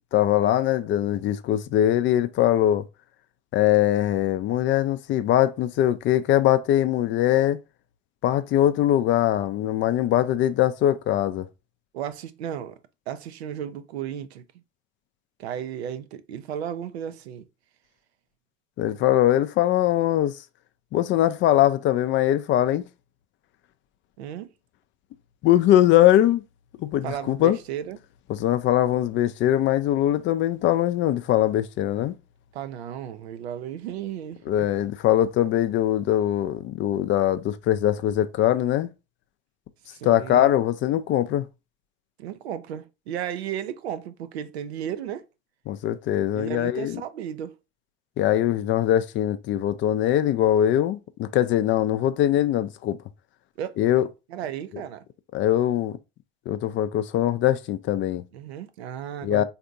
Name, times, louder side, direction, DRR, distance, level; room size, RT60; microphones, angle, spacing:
voice 1, 0.1-2.8 3.5-7.6 8.2-11.5 18.8-20.4 20.9-22.9 25.4-26.4 26.8-27.6 28.3-32.1 34.5-38.9 40.0-41.5 45.7-47.0 48.2-53.0 53.8-54.1 55.3-56.0 56.5-58.2 59.2-59.4, left 12 dB, 40° left, 0.4 m, -22 dB
voice 2, 11.9-12.8 13.1-14.4 15.4-17.5 24.2-24.5 27.0-28.0 32.5-34.7 39.9-40.5 42.2-45.2 46.3-47.6 53.6-53.8 54.3-55.0 58.3-59.4, right 9 dB, 85° right, 0.5 m, -34 dB
3.5 x 2.6 x 2.5 m
hypercardioid pair, 80°, 31 cm